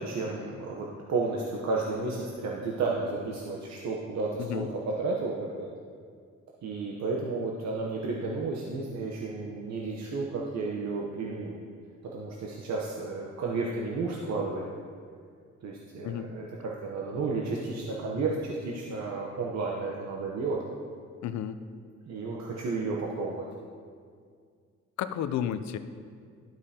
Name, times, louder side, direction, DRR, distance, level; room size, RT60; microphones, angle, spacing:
voice 1, 0.0-5.7 6.6-11.5 12.1-14.6 15.6-20.6 22.1-23.5, right 3 dB, 60° right, -2 dB, 0.9 m, -32 dB
voice 2, 21.2-21.6 25.0-25.8, left 10 dB, 65° left, 11 dB, 0.5 m, -32 dB
12.0 x 5.2 x 2.8 m, 2.1 s
cardioid pair, 90°, 30 cm